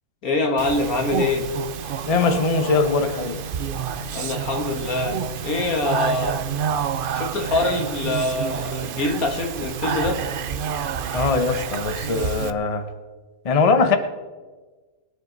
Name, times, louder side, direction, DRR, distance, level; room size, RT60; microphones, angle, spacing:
voice 1, 0.2-1.5 4.1-6.4 7.1-10.2, left 2 dB, 70° left, 3 dB, 2.1 m, -24 dB
Speech, 0.6-12.5, right 7 dB, 55° right, 0.6 m, -29 dB
voice 2, 2.0-3.4 11.1-12.8 13.4-14.0, left 4 dB, 30° left, 8 dB, 0.8 m, -21 dB
21.0 x 10.0 x 3.9 m, 1.3 s
omnidirectional pair, 1.6 m